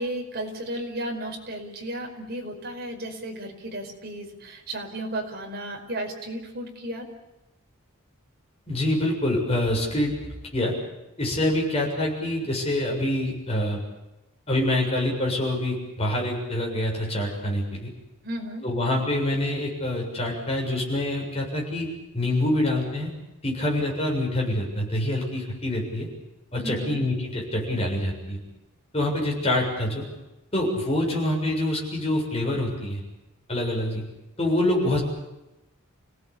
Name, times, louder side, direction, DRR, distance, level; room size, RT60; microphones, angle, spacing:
voice 1, 0.0-7.1 18.2-18.6 26.6-27.0, right 1 dB, 45° right, 2 dB, 5.1 m, -34 dB
voice 2, 8.7-10.2 10.5-10.8 11.2-13.8 14.5-17.9 18.6-23.1 23.4-26.1 26.5-28.4 28.9-30.0 30.5-33.0 33.5-34.1 34.4-35.0, left 1 dB, 25° left, -1 dB, 7.3 m, -26 dB
29.5 x 17.5 x 8.7 m, 0.98 s
head